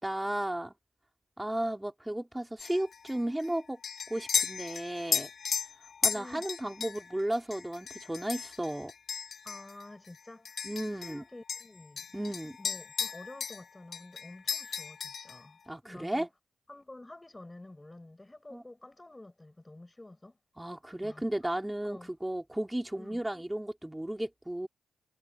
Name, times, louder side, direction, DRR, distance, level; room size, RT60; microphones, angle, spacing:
voice 1, 0.0-0.7 1.4-3.8 4.1-5.3 6.0-8.9 10.6-11.2 12.1-12.6 15.7-16.3 18.5-18.6 20.6-24.7, right 1 dB, 10° right, 4.2 m, -34 dB
sound 1, 2.6-11.2 11.5-13.7 13.9-15.4, left 6 dB, 65° left, 1.8 m, -35 dB
voice 2, 6.2-6.5 9.4-12.1 12.6-16.3 16.7-20.4 21.0-21.6 21.8-22.1 23.0-23.2, left 2 dB, 20° left, 6.5 m, -50 dB
cardioid pair, 60°, 0 cm